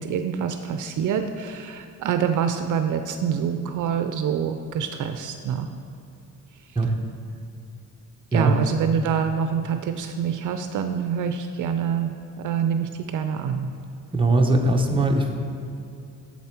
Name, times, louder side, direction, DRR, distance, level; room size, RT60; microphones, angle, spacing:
voice 1, 0.0-5.7 8.3-13.7, right 7 dB, 60° right, 7 dB, 0.5 m, -26 dB
voice 2, 14.1-15.3, right 2 dB, 15° right, 2 dB, 0.8 m, -20 dB
7.4 x 7.2 x 4.5 m, 2.6 s
cardioid pair, 115°, 34 cm